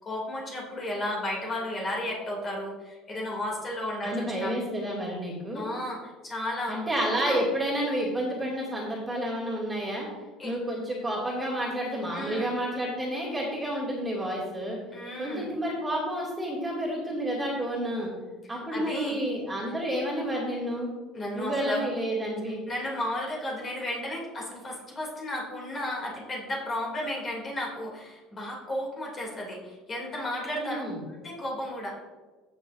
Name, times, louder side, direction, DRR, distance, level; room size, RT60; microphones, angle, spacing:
voice 1, 0.0-4.5 5.5-6.8 7.1-7.4 10.4-10.6 12.1-12.5 14.9-15.5 18.5-19.2 21.1-21.9 22.7-31.9, left 1 dB, 25° left, -2 dB, 2.9 m, -33 dB
voice 2, 4.0-5.6 6.7-10.1 10.4-14.8 15.2-18.1 18.5-20.9 21.3-22.6 30.5-31.0, equal, 10° right, -5 dB, 2.6 m, -30 dB
15.0 x 6.8 x 2.7 m, 1.3 s
cardioid pair, 135°, 0 cm